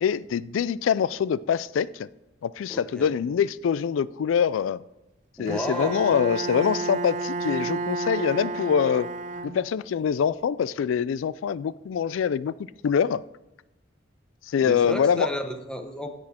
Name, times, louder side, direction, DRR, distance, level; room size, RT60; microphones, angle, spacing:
voice 1, 0.0-2.1 2.4-4.8 5.4-9.1 9.4-12.5 12.8-13.2 14.5-15.3, left 7 dB, 80° left, 20 dB, 0.3 m, -24 dB
voice 2, 2.7-3.1 5.4-6.0 14.6-16.1, equal, 5° left, 5 dB, 0.9 m, -32 dB
Bowed string instrument, 5.5-10.0, right 3 dB, 40° right, 0.4 m, -31 dB
15.5 x 6.3 x 4.3 m, 0.94 s
head